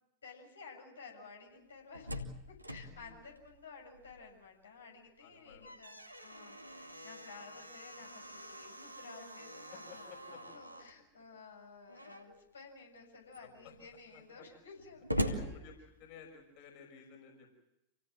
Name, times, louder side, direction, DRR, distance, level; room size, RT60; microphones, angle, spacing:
voice 1, 0.2-10.0 10.3-15.6, left 4 dB, 70° left, 1 dB, 7.1 m, -54 dB
Slam, 1.6-4.4 4.8-4.9 5.3-11.0 11.9-12.4 13.0-13.1 13.3-16.4, equal, 90° right, 2.5 m, -43 dB
voice 2, 5.2-5.8 9.7-10.4 13.4-13.7 14.1-14.2 15.2-15.7 16.0-17.5, left 6 dB, 45° left, 2 dB, 6.1 m, -54 dB
28.5 x 17.5 x 7.6 m, 0.87 s
figure-of-eight pair, 90°, 0 cm